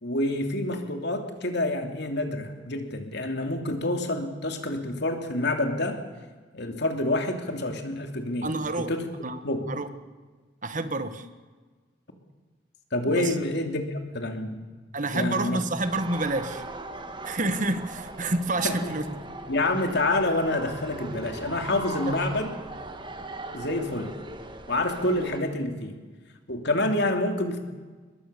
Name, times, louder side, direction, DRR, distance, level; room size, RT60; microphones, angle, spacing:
voice 1, 0.0-6.0 6.5-8.5 8.8-9.0 9.4-9.6 12.9-14.6 15.1-15.6 18.6-18.9 19.5-22.5 23.5-24.1 24.7-26.0 26.5-27.6, left 1 dB, 55° left, 5 dB, 2.9 m, -27 dB
voice 2, 8.4-8.9 9.2-9.4 9.7-9.9 10.6-11.3 13.0-13.3 14.9-16.6 17.2-19.0 22.2-22.3, right 2 dB, 40° right, 10 dB, 1.5 m, -28 dB
sound 1, 15.8-25.4, right 2 dB, 25° right, 1.7 m, -39 dB
22.5 x 21.5 x 7.0 m, 1.4 s
head